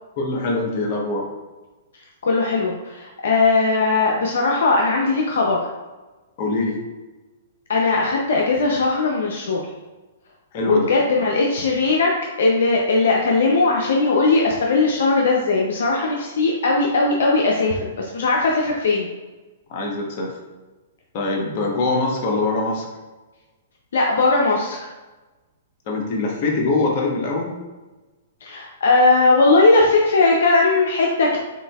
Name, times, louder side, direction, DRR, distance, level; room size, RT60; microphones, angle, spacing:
voice 1, 0.2-1.3 6.4-6.8 10.5-10.9 19.7-20.3 21.1-22.9 25.9-27.6, left 3 dB, 45° left, 0 dB, 1.1 m, -23 dB
voice 2, 2.2-5.6 7.7-9.7 10.7-12.1 12.4-19.1 23.9-24.9 28.4-31.4, left 3 dB, 75° left, -1 dB, 0.6 m, -18 dB
6.8 x 2.7 x 2.4 m, 1.2 s
hypercardioid pair, 135°, 0 cm